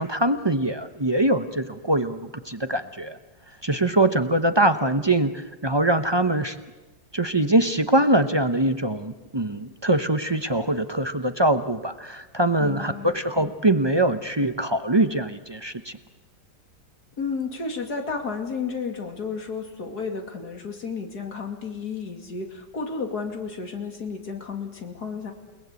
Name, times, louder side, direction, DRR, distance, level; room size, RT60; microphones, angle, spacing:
voice 1, 0.0-3.2 3.6-6.6 7.1-16.0, right 1 dB, 30° right, 8 dB, 0.5 m, -23 dB
voice 2, 12.6-13.1 17.2-25.3, left 5 dB, 55° left, 4 dB, 3.0 m, -32 dB
29.5 x 19.0 x 8.3 m, 1.2 s
omnidirectional pair, 2.0 m